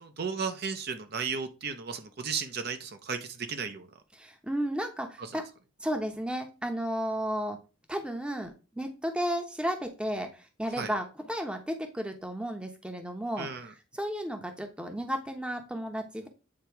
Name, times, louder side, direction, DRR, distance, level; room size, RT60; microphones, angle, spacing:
voice 1, 0.0-3.9 5.2-5.3 10.8-10.9 13.4-13.7, right 5 dB, 50° right, 7 dB, 0.7 m, -34 dB
voice 2, 4.2-5.5 5.8-7.6 7.9-13.5 13.9-16.3, equal, 5° right, 5 dB, 0.8 m, -33 dB
8.6 x 2.9 x 4.5 m, 0.31 s
head